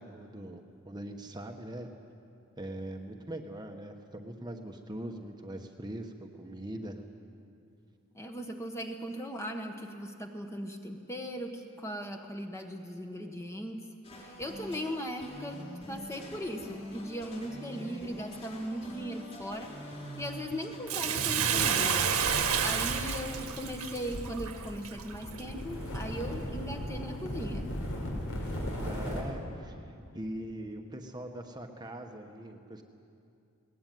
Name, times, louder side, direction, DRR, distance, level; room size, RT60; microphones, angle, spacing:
voice 1, 0.0-1.9 2.6-7.0 28.8-32.8, right 1 dB, 20° right, 3 dB, 1.2 m, -42 dB
voice 2, 8.1-13.9 14.2-19.7 20.2-22.1 22.6-27.7, equal, 15° left, 3 dB, 1.4 m, -38 dB
sound 1, 14.0-22.8, equal, 30° left, 6.1 m, -45 dB
Bathtub (filling or washing), 20.9-25.4 25.9-26.0, right 7 dB, 80° right, 1.8 m, -29 dB
sound 2, 21.9-29.2, equal, 75° left, 4.8 m, -38 dB
20.5 x 19.0 x 9.3 m, 2.5 s
head